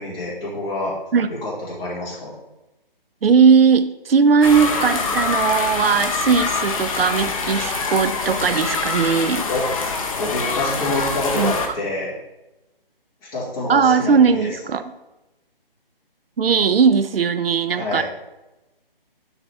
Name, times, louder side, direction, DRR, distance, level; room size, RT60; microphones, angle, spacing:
voice 1, 0.0-1.0 1.3-2.4 9.5-9.7 10.2-12.1 13.3-14.5 17.7-18.0, left 2 dB, 15° left, -7 dB, 2.0 m, -27 dB
voice 2, 3.2-9.4 11.3-11.5 13.7-14.8 16.4-18.0, right 6 dB, 75° right, 10 dB, 0.6 m, -18 dB
sound 1, 4.4-11.7, left 4 dB, 35° left, 0.8 m, -25 dB
10.0 x 4.1 x 3.4 m, 0.99 s
figure-of-eight pair, 155°, 29 cm